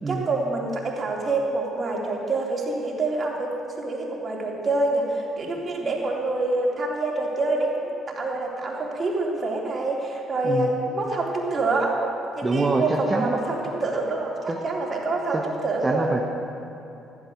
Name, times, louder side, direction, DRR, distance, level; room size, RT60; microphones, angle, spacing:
voice 1, 0.1-12.1 12.4-16.1, right 2 dB, 40° right, -1 dB, 3.6 m, -26 dB
voice 2, 12.4-13.3 14.5-14.6 15.3-15.4 15.8-16.2, right 3 dB, 25° right, 1 dB, 1.3 m, -25 dB
14.5 x 13.0 x 6.6 m, 3.0 s
hypercardioid pair, 50°, 0 cm